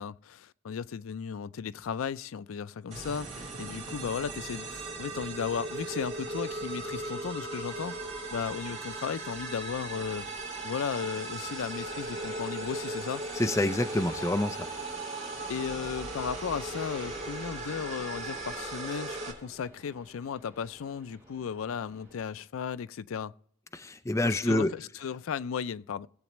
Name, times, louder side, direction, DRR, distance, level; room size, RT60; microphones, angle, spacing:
voice 1, 0.0-10.3 10.6-13.2 15.5-23.3 24.2-26.1, left 7 dB, 90° left, 0.4 m, -35 dB
sound 1, 2.9-19.3, right 2 dB, 35° right, 3.3 m, -38 dB
Train, 3.0-22.2, right 1 dB, 10° right, 4.3 m, -53 dB
sound 2, 10.8-18.7, left 3 dB, 70° left, 2.2 m, -48 dB
voice 2, 13.3-14.7 23.7-24.7, left 1 dB, 15° left, 0.5 m, -27 dB
20.5 x 8.0 x 3.0 m
head